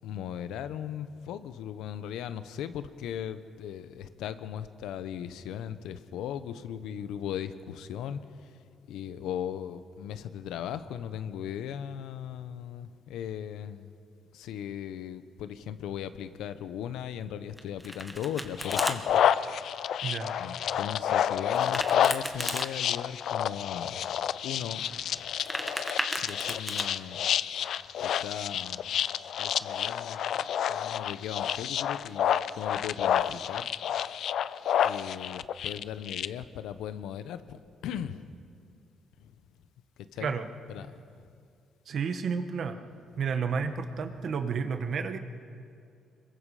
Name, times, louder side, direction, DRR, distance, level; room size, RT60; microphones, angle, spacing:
voice 1, 0.0-8.6 8.9-13.9 14.3-19.2 20.4-25.3 26.2-27.2 28.0-28.8 29.4-33.7 34.8-38.3 39.2-39.3 40.0-40.4 40.7-40.9 41.2-41.3, left 9 dB, 90° left, 12 dB, 1.0 m, -38 dB
Domestic sounds home sounds, 17.6-19.0 21.5-22.7 25.2-26.9, equal, ahead, 2.0 m, -35 dB
sound 1, 18.6-36.3, left 9 dB, 70° left, 0.5 m, -29 dB
voice 2, 41.8-42.8 43.2-45.2, right 6 dB, 60° right, 7 dB, 1.6 m, -31 dB
26.5 x 22.5 x 5.0 m, 2.4 s
cardioid pair, 90°, 0 cm